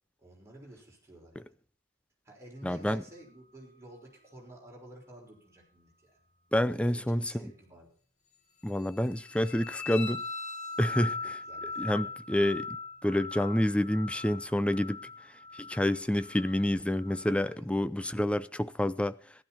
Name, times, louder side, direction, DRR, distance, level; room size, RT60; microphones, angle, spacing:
voice 1, 0.2-1.5 2.2-6.2 6.7-7.9 10.8-11.9 14.8-14.9 17.5-17.7, right 1 dB, 15° right, 6.0 m, -52 dB
voice 2, 2.6-3.0 6.5-7.5 8.6-10.2 10.8-11.1 11.8-12.8 13.0-15.0 15.5-19.2, left 1 dB, 5° left, 0.5 m, -28 dB
sound 1, 8.7-17.5, left 4 dB, 35° left, 4.2 m, -40 dB
15.0 x 12.5 x 4.5 m
head